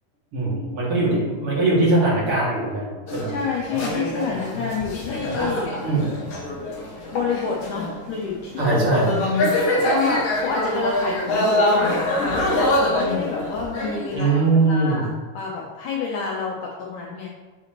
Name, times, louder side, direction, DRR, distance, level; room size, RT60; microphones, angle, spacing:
voice 1, 0.3-3.3 5.8-6.0 8.6-9.1 14.1-15.0, right 2 dB, 40° right, -6 dB, 2.6 m, -21 dB
sound 1, 3.1-8.1 8.5-14.6, left 1 dB, 55° left, 1.9 m, -24 dB
voice 2, 3.3-5.7 7.1-8.8 9.8-14.3 14.7-15.1 15.3-17.3, left 5 dB, 80° left, -2 dB, 1.8 m, -28 dB
7.8 x 7.0 x 3.0 m, 1.3 s
omnidirectional pair, 4.7 m